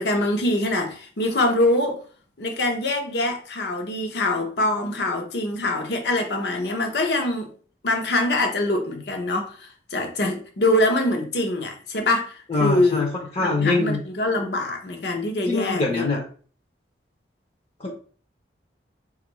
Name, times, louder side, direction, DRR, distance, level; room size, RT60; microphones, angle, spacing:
voice 1, 0.0-2.0 2.4-7.5 7.8-13.1 13.4-16.1, left 1 dB, 70° left, 0.8 m, -24 dB
voice 2, 12.5-13.1 13.4-14.0 15.5-16.2 17.8-17.9, left 3 dB, 35° left, 0.6 m, -23 dB
4.3 x 2.4 x 3.0 m
head